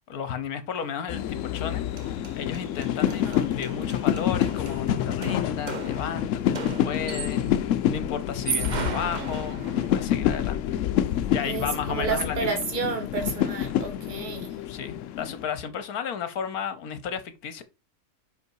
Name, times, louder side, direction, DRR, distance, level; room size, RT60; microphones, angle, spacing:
voice 1, 0.1-10.6 11.3-12.6 14.5-17.6, left 7 dB, 65° left, 1.1 m, -34 dB
sound 1, 1.1-15.4, left 10 dB, 80° left, 0.6 m, -28 dB
sound 2, 1.6-1.7 2.0-7.6 8.3-10.1, right 6 dB, 50° right, 0.5 m, -36 dB
voice 2, 3.1-3.5 11.4-14.6, right 5 dB, 30° right, 1.7 m, -31 dB
5.4 x 5.3 x 4.6 m
omnidirectional pair, 1.9 m